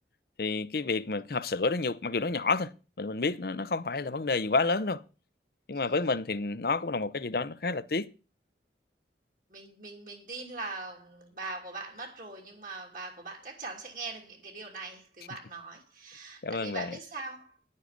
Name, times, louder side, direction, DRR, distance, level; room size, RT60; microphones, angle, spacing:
voice 1, 0.4-5.0 5.7-8.1 16.4-16.9, left 3 dB, 55° left, 0.7 m, -30 dB
voice 2, 9.5-17.6, right 3 dB, 50° right, 2.9 m, -41 dB
10.5 x 9.6 x 5.1 m
head